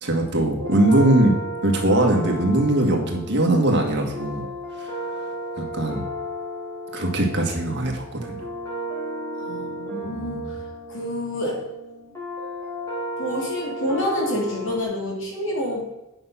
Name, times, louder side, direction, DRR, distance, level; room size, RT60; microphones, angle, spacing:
voice 1, 0.0-4.5 4.8-4.9 5.6-6.0 6.9-8.5 10.0-10.5, right 1 dB, 55° right, 2 dB, 1.9 m, -21 dB
voice 2, 0.6-0.9 9.4-10.6 10.9-11.7 13.2-15.9, left 1 dB, 60° left, -2 dB, 3.1 m, -28 dB
sound 1, 0.6-14.8, equal, 15° left, 2.8 m, -33 dB
9.2 x 6.0 x 5.8 m, 0.96 s
head